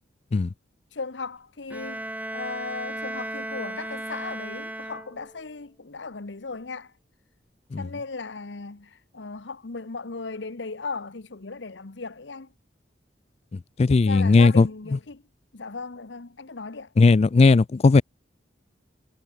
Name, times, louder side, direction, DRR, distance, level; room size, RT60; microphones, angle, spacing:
voice 1, 0.9-6.9 7.8-12.5 13.9-15.2 15.5-16.9, left 4 dB, 70° left, 1.1 m, -37 dB
Bowed string instrument, 1.7-5.5, right 1 dB, 10° right, 1.8 m, -35 dB
voice 2, 13.8-14.7 17.0-18.0, left 3 dB, 35° left, 0.4 m, -17 dB
head